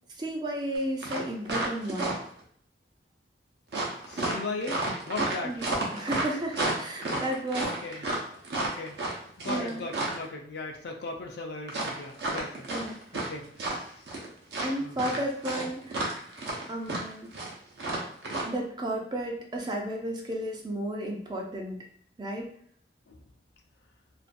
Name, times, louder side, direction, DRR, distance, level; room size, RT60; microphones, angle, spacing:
voice 1, 0.1-2.2 5.4-8.1 9.5-9.9 12.7-13.0 14.6-16.1 16.7-17.3 18.4-21.8 22.2-22.5, right 1 dB, 25° right, 1 dB, 0.4 m, -33 dB
sound 1, 0.7-2.4 3.7-10.2 11.7-13.3 13.5-14.3 14.5-18.4, right 2 dB, 65° right, 0.6 m, -31 dB
voice 2, 4.0-5.6 7.6-8.1 8.5-9.0 9.4-12.7 13.1-14.1 14.8-15.2 23.1-23.2, left 3 dB, 65° left, 2 dB, 0.5 m, -38 dB
2.5 x 2.3 x 2.5 m, 0.62 s
head